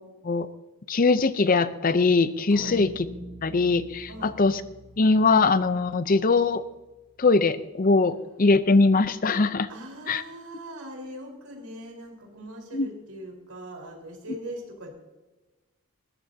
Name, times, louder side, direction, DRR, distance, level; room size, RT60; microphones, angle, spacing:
voice 1, 0.9-2.9 3.4-4.6 5.0-6.6 7.2-9.7 10.1-10.2 12.7-12.9, left 3 dB, 40° left, 13 dB, 0.6 m, -21 dB
sound 1, 2.5-7.0, equal, 10° left, 2.5 m, -44 dB
voice 2, 9.7-14.9, right 1 dB, 80° right, 1 dB, 4.2 m, -41 dB
20.0 x 14.5 x 2.8 m, 1.1 s
head